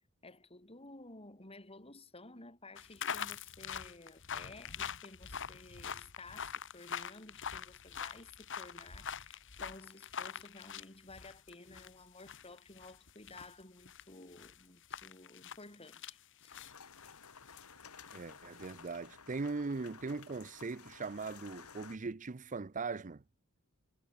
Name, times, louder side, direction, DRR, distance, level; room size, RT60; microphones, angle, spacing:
voice 1, 0.0-16.6, left 2 dB, 25° left, 6.7 m, -54 dB
sound 1, 2.8-11.9 12.2-16.1 16.4-18.9, left 7 dB, 60° left, 2.8 m, -44 dB
sound 2, 16.5-22.0, left 6 dB, 85° left, 2.6 m, -54 dB
voice 2, 18.1-23.2, right 4 dB, 35° right, 0.6 m, -40 dB
head